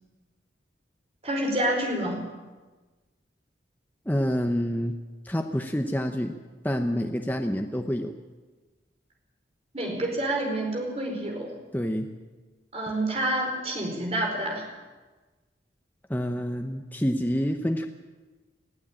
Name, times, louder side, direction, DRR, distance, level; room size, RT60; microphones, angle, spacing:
voice 1, 1.2-2.2 9.7-11.5 12.7-14.6, right 1 dB, 35° right, 1 dB, 4.6 m, -28 dB
voice 2, 4.1-5.0 5.2-6.3 6.6-8.1 11.7-12.1 16.1-17.9, equal, 10° left, 4 dB, 0.9 m, -27 dB
20.5 x 14.5 x 8.9 m, 1.3 s
head